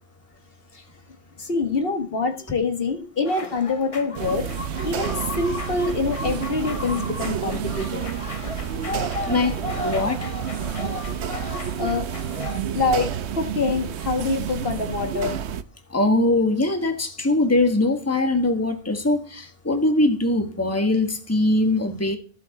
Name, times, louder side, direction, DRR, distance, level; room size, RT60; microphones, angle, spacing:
voice 1, 1.4-4.5 4.8-8.0 11.8-12.2 12.7-15.4, left 4 dB, 60° left, 1.6 m, -25 dB
sound 1, 3.2-12.6, left 2 dB, 30° left, 1.1 m, -35 dB
sound 2, 4.1-15.6, right 8 dB, 85° right, 1.0 m, -30 dB
voice 2, 9.8-10.3 15.9-22.2, left 2 dB, 15° left, 1.5 m, -21 dB
15.0 x 7.1 x 4.0 m
omnidirectional pair, 1.1 m